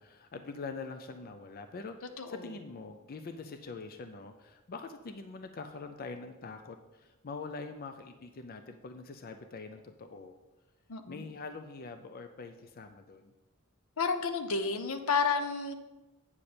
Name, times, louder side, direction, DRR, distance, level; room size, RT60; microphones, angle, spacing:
voice 1, 0.0-10.4 11.1-13.3, left 4 dB, 45° left, 8 dB, 0.5 m, -44 dB
voice 2, 2.2-2.5 10.9-11.2 14.0-15.7, left 5 dB, 80° left, 8 dB, 0.7 m, -31 dB
8.6 x 6.7 x 4.3 m, 1.1 s
head